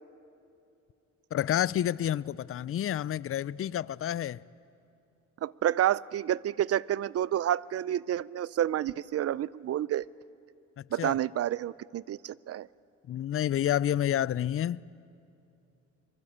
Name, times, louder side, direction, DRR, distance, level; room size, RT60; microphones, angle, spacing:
voice 1, 1.3-4.4 11.0-11.2 13.1-14.8, left 11 dB, 45° left, 0.5 m, -29 dB
voice 2, 5.4-10.1 10.9-12.7, right 11 dB, 50° right, 0.5 m, -29 dB
24.0 x 23.5 x 8.7 m
cardioid pair, 90°, 30 cm